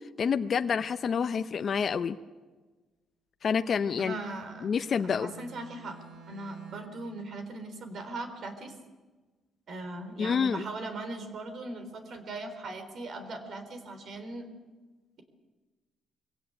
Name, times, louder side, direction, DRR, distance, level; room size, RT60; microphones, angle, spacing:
voice 1, 0.2-2.2 3.4-4.2 4.6-5.3 10.2-10.6, left 6 dB, 50° left, 10 dB, 0.7 m, -28 dB
Bowed string instrument, 3.7-7.1, right 4 dB, 80° right, 3.5 m, -52 dB
voice 2, 4.0-4.7 5.0-6.0 6.3-8.7 9.7-14.5, right 2 dB, 60° right, 7 dB, 3.8 m, -39 dB
22.5 x 16.5 x 8.9 m, 1.3 s
cardioid pair, 90°, 0 cm